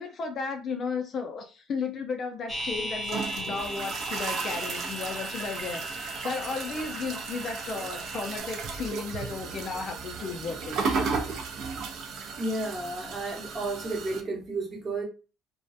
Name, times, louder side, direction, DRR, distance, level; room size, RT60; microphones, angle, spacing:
voice 1, 0.0-11.9, left 4 dB, 35° left, 0.4 m, -35 dB
sound 1, 2.5-8.4, equal, 5° left, 0.8 m, -38 dB
sound 2, 2.5-14.2, right 5 dB, 55° right, 0.4 m, -35 dB
voice 2, 12.4-15.0, right 2 dB, 25° right, 0.8 m, -32 dB
2.3 x 2.0 x 2.5 m
cardioid pair, 155°, 0 cm